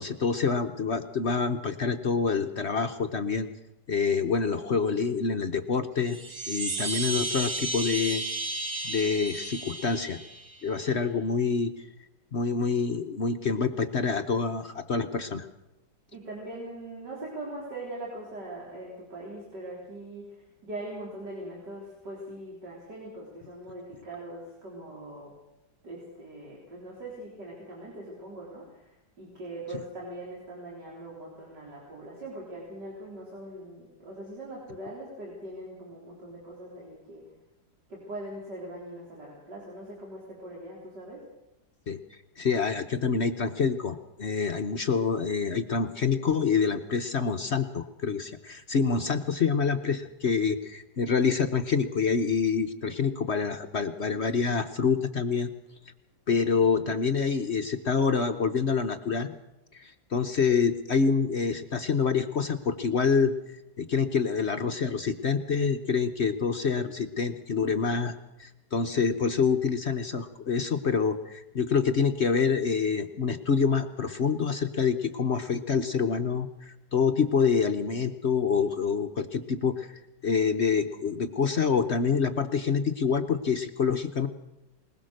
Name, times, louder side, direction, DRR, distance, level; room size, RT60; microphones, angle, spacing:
voice 1, 0.0-3.5 3.9-6.2 6.5-8.2 8.8-10.2 10.6-11.9 12.3-15.5 41.9-42.0 42.4-55.5 56.3-59.4 59.7-63.3 63.8-84.3, left 5 dB, 50° left, 7 dB, 1.0 m, -27 dB
Chime, 6.0-10.7, right 2 dB, 75° right, 2.8 m, -33 dB
voice 2, 16.1-25.3 25.8-37.2 37.9-41.2, right 1 dB, 90° right, -4 dB, 4.5 m, -41 dB
20.5 x 20.5 x 6.4 m, 0.93 s
omnidirectional pair, 1.8 m